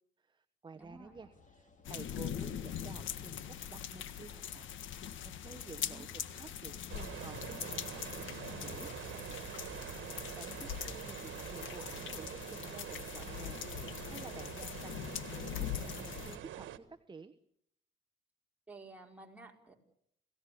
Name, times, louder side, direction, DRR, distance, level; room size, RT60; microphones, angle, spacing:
voice 1, 0.2-4.6 4.9-8.9 10.0-17.3, right 4 dB, 25° right, 9 dB, 1.1 m, -52 dB
voice 2, 0.7-1.2 5.8-6.1 9.9-10.4 18.7-19.7, right 3 dB, 5° right, 0 dB, 4.9 m, -54 dB
sound 1, 0.8-17.0, left 4 dB, 40° left, 4.6 m, -65 dB
sound 2, 1.8-16.4, left 10 dB, 75° left, 1.7 m, -42 dB
sound 3, 6.9-16.8, right 11 dB, 75° right, 1.6 m, -45 dB
28.5 x 17.0 x 8.5 m, 0.73 s
cardioid pair, 90°, 20 cm